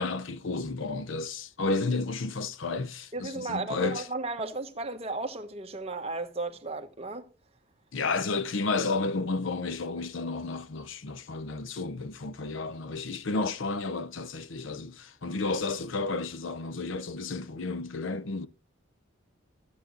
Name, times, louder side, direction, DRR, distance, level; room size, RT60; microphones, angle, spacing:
voice 1, 0.0-4.1 7.9-18.5, left 3 dB, 75° left, 0.7 m, -32 dB
voice 2, 3.1-7.3, right 3 dB, 30° right, 1.2 m, -34 dB
14.0 x 8.2 x 3.8 m
head